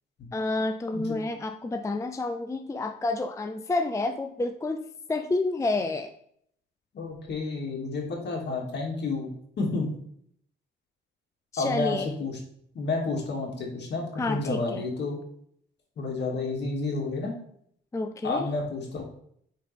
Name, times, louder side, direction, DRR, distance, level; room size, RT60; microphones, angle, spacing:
voice 1, 0.3-6.1 11.5-12.1 14.2-14.8 17.9-18.5, left 2 dB, 15° left, 7 dB, 0.4 m, -29 dB
voice 2, 6.9-9.3 9.6-9.9 11.6-12.4 12.7-15.2 16.0-17.3 18.2-19.0, left 3 dB, 60° left, 0 dB, 2.2 m, -30 dB
9.0 x 4.3 x 3.4 m, 0.66 s
cardioid pair, 90°, 20 cm